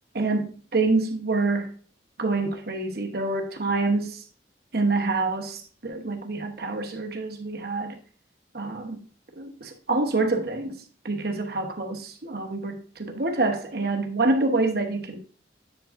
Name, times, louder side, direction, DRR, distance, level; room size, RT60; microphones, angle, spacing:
voice 1, 0.1-1.7 2.2-4.2 4.7-8.0 8.5-9.0 9.4-10.8 11.0-15.2, right 3 dB, 55° right, 1.0 m, -26 dB
9.5 x 4.9 x 2.5 m
head